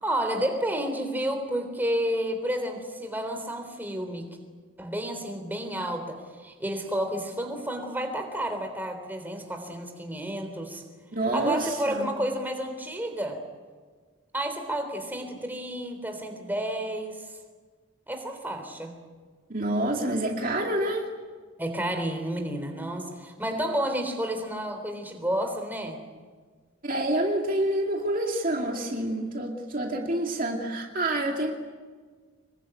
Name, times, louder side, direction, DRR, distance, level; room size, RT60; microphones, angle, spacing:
voice 1, 0.0-4.3 4.8-10.8 11.3-13.4 14.3-17.3 18.1-18.9 21.6-26.0, right 1 dB, 10° right, 5 dB, 3.6 m, -31 dB
voice 2, 11.1-12.1 19.5-21.1 26.8-31.5, right 1 dB, 40° right, 1 dB, 2.4 m, -27 dB
25.5 x 22.5 x 9.1 m, 1.5 s
head